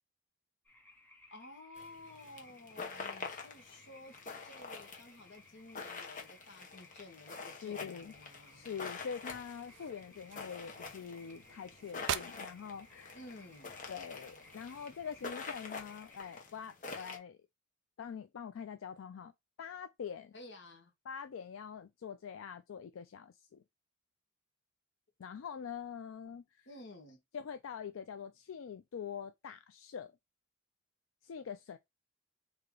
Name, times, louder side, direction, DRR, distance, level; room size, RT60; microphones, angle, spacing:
sound 1, 0.7-16.4, left 2 dB, 10° left, 1.1 m, -61 dB
voice 1, 1.3-8.8 13.1-13.8 20.3-20.9 26.6-27.2, left 2 dB, 65° left, 1.2 m, -53 dB
sound 2, 1.8-17.2, left 4 dB, 40° left, 1.0 m, -47 dB
voice 2, 7.5-8.1 8.5-13.2 13.9-17.4 18.0-19.3 19.6-20.3 21.1-23.6 25.2-26.7 27.3-30.1 31.2-31.8, left 7 dB, 85° left, 0.4 m, -44 dB
sound 3, 8.0-15.6, right 10 dB, 60° right, 0.4 m, -47 dB
3.7 x 2.8 x 4.7 m
head